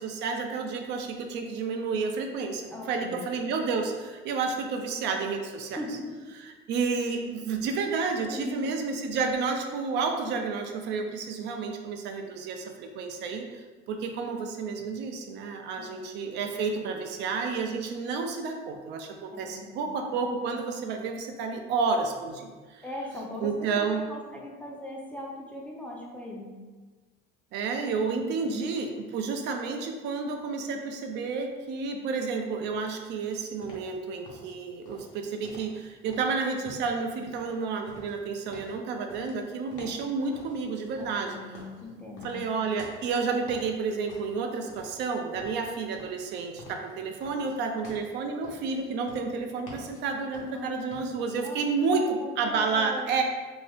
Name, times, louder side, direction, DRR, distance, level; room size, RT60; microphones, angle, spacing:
voice 1, 0.0-5.8 6.5-13.4 13.9-22.8 23.4-24.0 27.5-41.4 42.2-53.2, right 4 dB, 55° right, 4 dB, 0.4 m, -30 dB
voice 2, 2.7-3.2 5.8-6.3 8.2-8.7 15.8-16.1 19.3-19.8 22.8-26.5 28.1-28.5 41.0-42.3 50.5-53.2, left 1 dB, 5° left, -3 dB, 0.4 m, -40 dB
sound 1, 33.1-51.3, left 1 dB, 80° left, 1.0 m, -50 dB
2.7 x 2.6 x 3.3 m, 1.4 s
cardioid pair, 140°, 21 cm